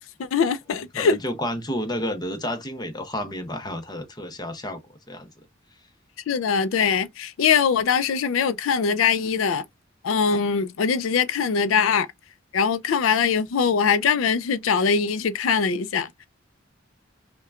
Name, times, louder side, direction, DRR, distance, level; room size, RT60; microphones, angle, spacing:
voice 1, 0.2-1.2 6.3-9.6 10.0-12.1 12.5-16.3, left 6 dB, 85° left, 0.4 m, -22 dB
voice 2, 0.9-4.8 5.1-5.3, left 1 dB, 20° left, 0.7 m, -30 dB
5.6 x 2.2 x 2.3 m
head